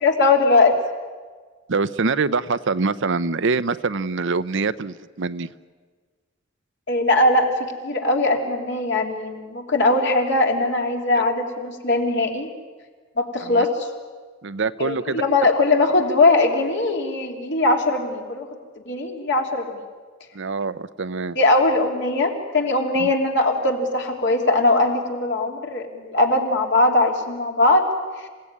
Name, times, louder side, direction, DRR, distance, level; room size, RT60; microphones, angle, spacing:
voice 1, 0.0-0.7 6.9-12.5 13.2-13.9 14.8-18.5 18.9-19.8 21.3-27.8, left 2 dB, 60° left, 2 dB, 3.2 m, -20 dB
voice 2, 1.7-5.5 11.2-11.3 13.4-13.7 14.4-15.2 20.3-21.4 23.0-23.1, right 4 dB, 65° right, 14 dB, 0.7 m, -24 dB
27.5 x 17.0 x 9.8 m, 1.5 s
head